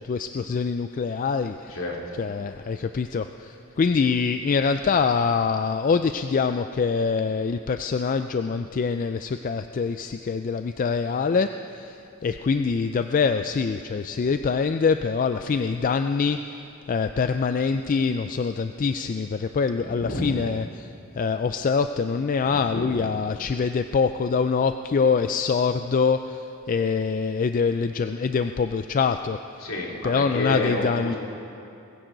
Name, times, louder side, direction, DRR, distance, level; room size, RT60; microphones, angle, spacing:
voice 1, 0.0-1.8 2.2-20.9 21.2-29.4 30.0-31.1, left 5 dB, 40° left, 8 dB, 0.3 m, -24 dB
voice 2, 1.7-2.2 19.8-20.4 22.4-22.9 29.6-31.2, left 1 dB, 70° left, -3 dB, 2.8 m, -30 dB
20.5 x 15.5 x 3.9 m, 2.7 s
head